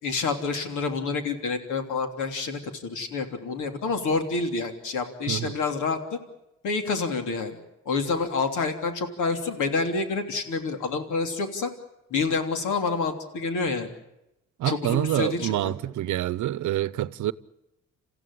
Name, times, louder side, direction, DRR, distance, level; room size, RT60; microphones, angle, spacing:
voice 1, 0.0-6.2 6.6-7.6 7.8-11.7 12.1-13.9 14.6-15.7, left 4 dB, 80° left, 3.3 m, -28 dB
voice 2, 14.6-17.3, right 13 dB, 75° right, 0.8 m, -27 dB
28.5 x 15.5 x 9.9 m
cardioid pair, 90°, 30 cm